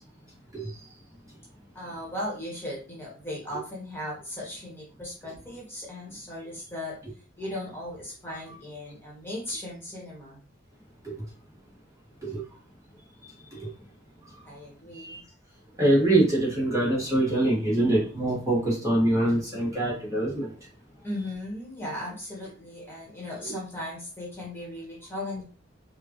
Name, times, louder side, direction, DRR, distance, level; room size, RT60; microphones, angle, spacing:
voice 1, 1.7-6.9 7.4-10.4 14.4-15.2 21.0-25.4, left 1 dB, 10° left, -4 dB, 1.5 m, -37 dB
voice 2, 15.8-20.5, right 1 dB, 15° right, -5 dB, 1.7 m, -24 dB
5.1 x 2.5 x 3.0 m, 0.37 s
head